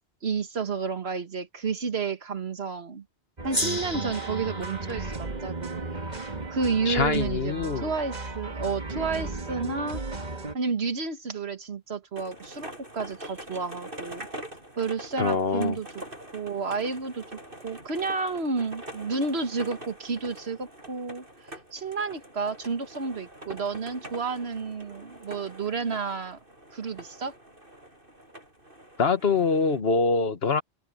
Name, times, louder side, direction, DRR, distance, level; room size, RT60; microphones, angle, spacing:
voice 1, 0.2-3.0 3.4-6.0 6.5-10.0 10.5-14.3 14.8-15.9 16.3-17.2 17.6-21.3 21.7-26.4 26.7-27.3, right 4 dB, 85° right, 1.8 m, -31 dB
sound 1, 3.4-10.6, right 3 dB, 45° right, 2.0 m, -35 dB
Gong, 3.5-8.3, equal, 55° left, 5.5 m, -37 dB
voice 2, 6.9-7.9 15.2-15.8 29.0-30.6, left 4 dB, 75° left, 1.6 m, -24 dB
sound 2, 12.1-29.8, right 1 dB, 60° right, 8.3 m, -44 dB
open air
omnidirectional pair, 1.0 m